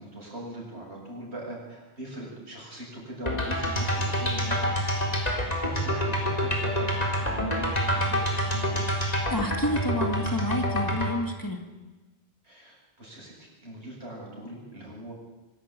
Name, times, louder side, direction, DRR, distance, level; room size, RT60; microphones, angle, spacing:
voice 1, 0.0-4.8 5.2-8.9 12.4-15.1, right 1 dB, 90° right, -3 dB, 8.4 m, -41 dB
sound 1, 3.3-11.1, equal, 40° left, 4.0 m, -27 dB
voice 2, 9.3-11.6, left 1 dB, 20° left, 3 dB, 2.4 m, -29 dB
24.5 x 12.5 x 9.1 m, 1.1 s
omnidirectional pair, 1.1 m